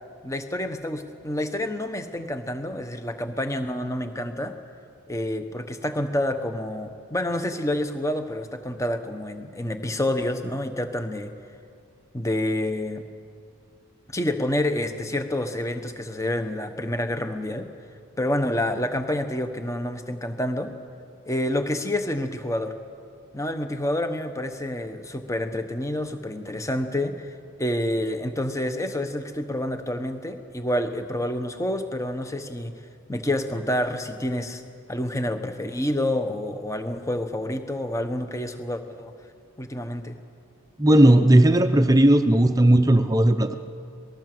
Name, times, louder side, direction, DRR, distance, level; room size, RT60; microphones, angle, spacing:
voice 1, 0.2-4.6 5.1-11.3 12.1-13.0 14.1-17.7 18.2-20.7 21.2-22.7 23.3-27.3 27.6-32.7 33.1-34.6 34.9-39.1 39.6-40.1, left 1 dB, 15° left, 8 dB, 1.1 m, -28 dB
voice 2, 40.8-43.5, right 1 dB, 15° right, 8 dB, 0.7 m, -16 dB
26.0 x 19.5 x 7.8 m, 2.4 s
head